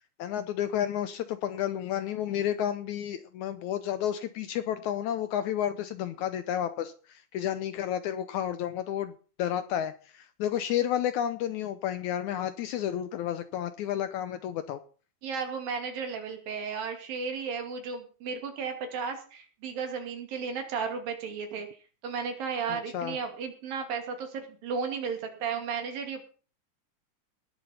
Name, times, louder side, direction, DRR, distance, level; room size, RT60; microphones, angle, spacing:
voice 1, 0.2-9.1 9.4-14.8 22.7-23.2, left 10 dB, 75° left, 11 dB, 1.8 m, -31 dB
voice 2, 15.2-21.7 22.0-26.3, right 6 dB, 80° right, 4 dB, 4.2 m, -34 dB
19.0 x 7.3 x 5.6 m, 0.39 s
omnidirectional pair, 4.0 m